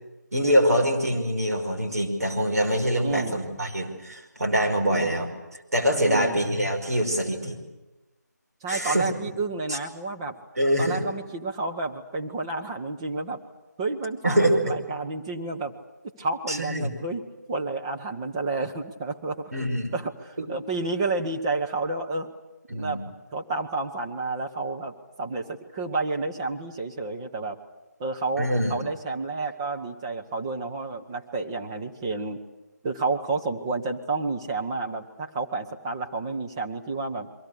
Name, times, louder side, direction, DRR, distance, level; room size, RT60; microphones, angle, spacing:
voice 1, 0.3-5.3 5.7-7.6 8.7-9.1 9.7-9.8 10.6-11.0 14.2-14.7 16.5-16.9 19.5-19.9 20.4-20.5 22.7-23.0 28.4-28.8, equal, 60° right, 2 dB, 5.4 m, -24 dB
voice 2, 3.0-3.4 4.9-5.2 6.0-6.4 8.6-10.4 10.8-13.4 13.8-15.8 16.2-17.2 17.5-19.5 19.9-22.3 22.7-23.0 23.3-27.6 28.0-32.4 32.8-37.3, right 3 dB, 15° right, 2 dB, 1.1 m, -30 dB
29.0 x 23.0 x 6.8 m, 1.0 s
figure-of-eight pair, 155°, 10 cm